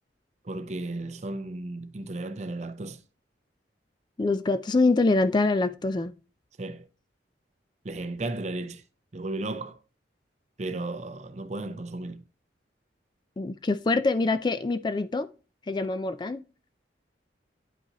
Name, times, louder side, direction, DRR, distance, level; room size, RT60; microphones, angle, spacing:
voice 1, 0.4-3.0 6.6-6.9 7.8-8.8 9.1-9.8 10.6-12.2, right 2 dB, 40° right, 0.6 m, -34 dB
voice 2, 4.2-6.1 13.4-15.3 15.7-16.4, left 3 dB, 25° left, 0.3 m, -25 dB
9.7 x 5.4 x 2.9 m
head